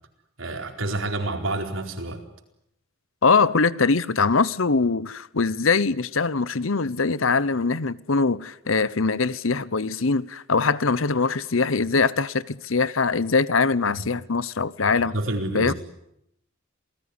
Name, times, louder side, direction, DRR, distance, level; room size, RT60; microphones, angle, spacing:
voice 1, 0.4-2.2 13.9-14.0 15.1-15.7, right 2 dB, 75° right, 4.4 m, -28 dB
voice 2, 3.2-15.1 15.5-15.7, left 4 dB, 80° left, 0.9 m, -22 dB
28.0 x 19.0 x 9.8 m
head